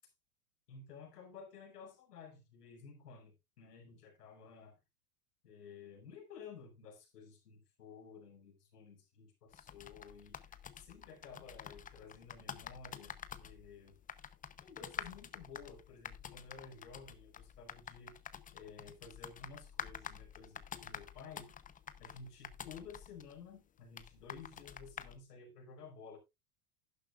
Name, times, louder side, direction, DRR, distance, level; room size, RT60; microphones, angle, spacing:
voice 1, 0.7-4.8 5.4-14.0 14.6-18.2 18.5-21.5 22.0-26.2, left 5 dB, 85° left, 5.1 m, -53 dB
sound 1, 9.5-25.2, left 8 dB, 20° left, 0.8 m, -49 dB
12.0 x 10.5 x 2.4 m
hypercardioid pair, 115°, 46 cm